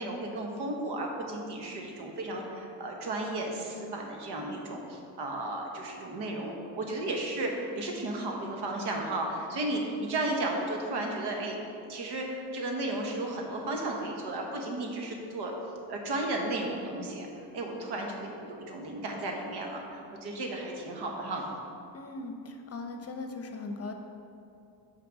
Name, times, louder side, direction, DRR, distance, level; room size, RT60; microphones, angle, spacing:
voice 1, 0.0-11.6 11.9-15.6 15.9-17.3 17.5-21.5, right 2 dB, 70° right, 1 dB, 1.3 m, -34 dB
voice 2, 21.9-23.9, left 3 dB, 35° left, 5 dB, 0.7 m, -39 dB
6.0 x 4.7 x 6.1 m, 2.6 s
cardioid pair, 85°, 41 cm